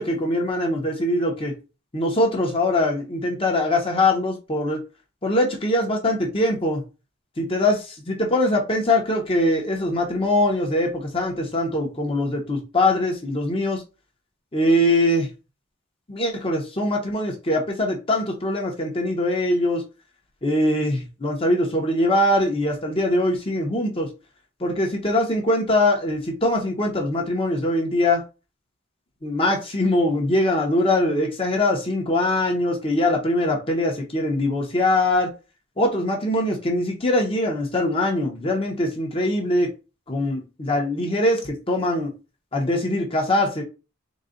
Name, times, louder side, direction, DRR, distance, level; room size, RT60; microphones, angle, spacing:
voice 1, 0.0-1.5 1.9-4.8 5.2-6.8 7.4-13.8 14.5-15.3 16.1-19.8 20.4-24.1 24.6-28.2 29.2-35.3 35.8-39.7 40.1-42.1 42.5-43.6, left 1 dB, 30° left, 0.9 m, -22 dB
4.0 x 2.3 x 3.8 m
head